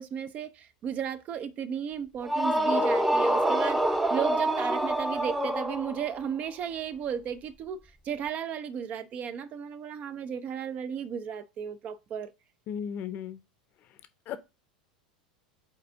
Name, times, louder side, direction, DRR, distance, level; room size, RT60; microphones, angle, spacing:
voice 1, 0.0-12.3, right 8 dB, 35° right, 0.6 m, -34 dB
sound 1, 2.2-6.2, right 1 dB, 5° right, 0.8 m, -26 dB
voice 2, 12.7-13.4 14.3-14.4, left 8 dB, 40° left, 0.8 m, -35 dB
5.3 x 4.1 x 5.5 m
figure-of-eight pair, 85°, 4 cm